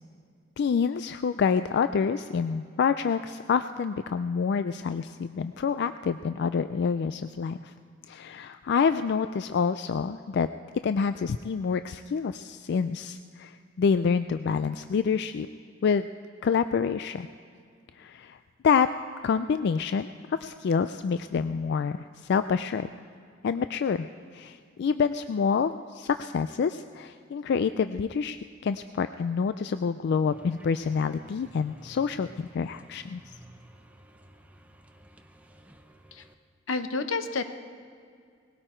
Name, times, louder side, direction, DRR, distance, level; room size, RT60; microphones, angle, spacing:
voice 1, 0.6-7.7 8.1-10.5 10.8-15.5 15.8-16.1 16.4-17.3 18.0-18.4 18.6-18.9 19.2-22.9 23.4-24.1 24.3-28.4 28.6-33.2, left 6 dB, 60° left, 11 dB, 0.3 m, -27 dB
sound 1, 30.3-36.3, right 1 dB, 10° right, 0.8 m, -53 dB
voice 2, 36.7-37.5, left 3 dB, 85° left, 9 dB, 0.9 m, -30 dB
19.5 x 16.5 x 4.4 m, 2.2 s
head